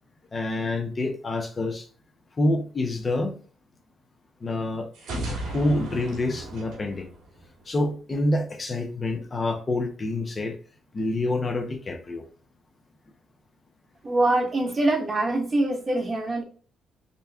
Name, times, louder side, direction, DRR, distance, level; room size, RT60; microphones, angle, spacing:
voice 1, 0.3-1.9 2.4-3.3 4.4-7.1 7.7-10.5 10.9-12.2, left 2 dB, 30° left, 0.8 m, -27 dB
sound 1, 4.9-7.8, right 1 dB, 85° right, 1.9 m, -35 dB
voice 2, 14.0-16.4, right 2 dB, 30° right, 1.0 m, -24 dB
4.0 x 2.2 x 3.3 m
cardioid pair, 90°, 0 cm